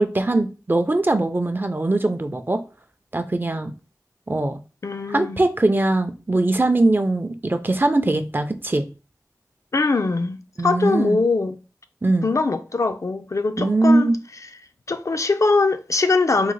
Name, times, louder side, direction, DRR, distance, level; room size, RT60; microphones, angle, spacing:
voice 1, 0.0-2.6 3.1-3.7 4.3-4.6 5.1-8.8 10.6-11.2 12.0-12.3 13.6-14.2, right 2 dB, 30° right, 0.4 m, -21 dB
voice 2, 4.8-5.4 9.7-10.4 10.6-11.6 12.2-14.1 14.9-16.5, left 3 dB, 55° left, 0.3 m, -21 dB
3.6 x 2.0 x 3.1 m
wide cardioid pair, 45°, 6 cm